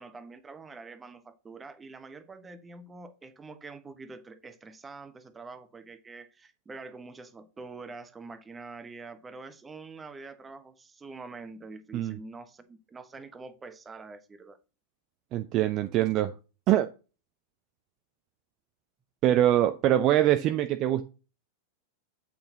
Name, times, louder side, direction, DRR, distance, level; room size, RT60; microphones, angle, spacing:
voice 1, 0.0-14.6, right 3 dB, 15° right, 1.1 m, -45 dB
voice 2, 15.3-16.3 16.7-16.9 19.2-21.1, right 12 dB, 35° right, 0.6 m, -23 dB
8.6 x 5.9 x 3.9 m
figure-of-eight pair, 90°, 0 cm